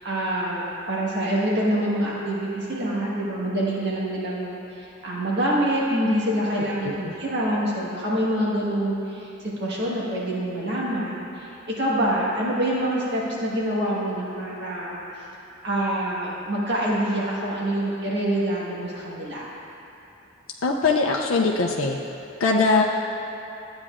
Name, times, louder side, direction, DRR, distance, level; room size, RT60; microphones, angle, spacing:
voice 1, 0.0-15.0 15.6-19.5, right 1 dB, 55° right, -6 dB, 1.5 m, -26 dB
voice 2, 6.8-7.1 20.6-22.0 22.4-22.8, left 4 dB, 70° left, -1 dB, 0.5 m, -21 dB
12.5 x 8.7 x 2.5 m, 2.8 s
head